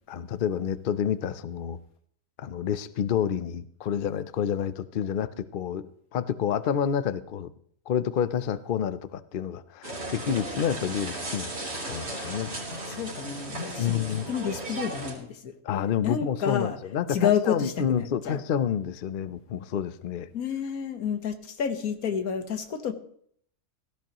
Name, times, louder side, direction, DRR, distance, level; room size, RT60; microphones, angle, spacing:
voice 1, 0.1-1.8 2.4-7.5 7.9-12.5 13.8-14.3 15.6-20.3, left 8 dB, 55° left, 14 dB, 0.6 m, -29 dB
sound 1, 9.8-15.1, right 2 dB, 45° right, 3.5 m, -36 dB
voice 2, 12.7-15.5 16.0-16.8 17.1-18.4 20.3-22.9, left 8 dB, 80° left, 8 dB, 1.6 m, -30 dB
17.5 x 13.5 x 3.0 m, 0.62 s
omnidirectional pair, 1.5 m